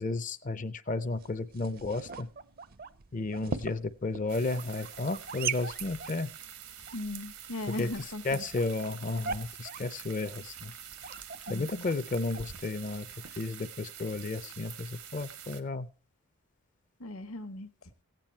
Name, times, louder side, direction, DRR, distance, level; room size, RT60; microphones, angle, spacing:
voice 1, 0.0-2.3 3.1-6.3 7.8-7.9 8.2-10.7 11.5-13.1 13.4-15.9, left 3 dB, 35° left, 14 dB, 0.5 m, -33 dB
sound 1, 1.0-13.4, right 5 dB, 40° right, 0.5 m, -42 dB
sound 2, 4.3-15.6, right 9 dB, 85° right, 1.3 m, -46 dB
voice 2, 6.8-8.4 11.5-11.9 17.0-17.7, left 2 dB, 70° left, 10 dB, 1.1 m, -38 dB
15.5 x 9.1 x 4.4 m, 0.39 s
head